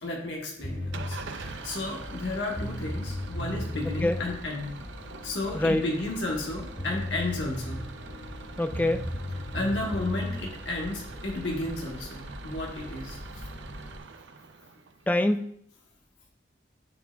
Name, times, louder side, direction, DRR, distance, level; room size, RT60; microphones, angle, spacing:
voice 1, 0.0-4.7 5.2-7.8 9.5-13.2, left 2 dB, 85° left, -1 dB, 1.3 m, -33 dB
Eruption (Cinematic Music), 0.6-14.0, left 1 dB, 55° left, 1.6 m, -44 dB
sound 1, 0.6-1.2 2.2-2.3 2.6-4.3 6.4-6.5 6.8-8.0 8.7-10.4, left 1 dB, 35° left, 1.1 m, -34 dB
Engine starting / Idling, 0.9-15.1, right 4 dB, 85° right, 0.5 m, -45 dB
voice 2, 5.5-5.9 8.6-9.1 15.1-15.5, left 1 dB, 10° left, 8 dB, 0.3 m, -25 dB
10.0 x 4.8 x 2.3 m, 0.69 s
head